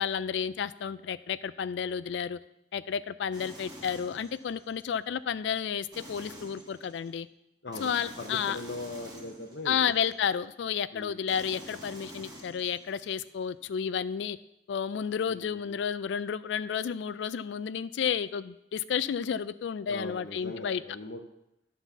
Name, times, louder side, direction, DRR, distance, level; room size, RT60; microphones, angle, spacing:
voice 1, 0.0-2.4 2.7-7.3 7.8-8.6 9.6-14.4 14.7-20.8, left 7 dB, 85° left, 16 dB, 0.3 m, -31 dB
sound 1, 3.3-4.9 5.9-7.1 7.7-10.3 11.3-13.3, equal, 25° right, 1.7 m, -48 dB
voice 2, 8.2-9.8 10.9-11.1 15.3-15.8 19.9-21.2, left 2 dB, 65° left, 0 dB, 0.8 m, -40 dB
11.5 x 4.1 x 7.0 m, 0.84 s
head